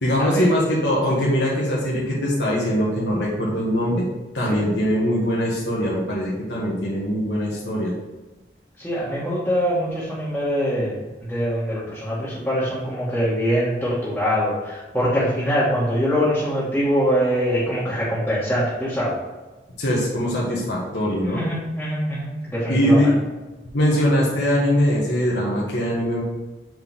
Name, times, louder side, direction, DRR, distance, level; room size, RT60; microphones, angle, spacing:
voice 1, 0.0-4.1 4.3-7.9 19.8-21.4 22.7-23.1 23.7-26.2, equal, 80° left, -4 dB, 1.5 m, -21 dB
voice 2, 8.8-10.9 11.3-19.1 21.2-23.1, equal, 5° left, -12 dB, 1.8 m, -23 dB
7.8 x 4.6 x 3.6 m, 1.1 s
head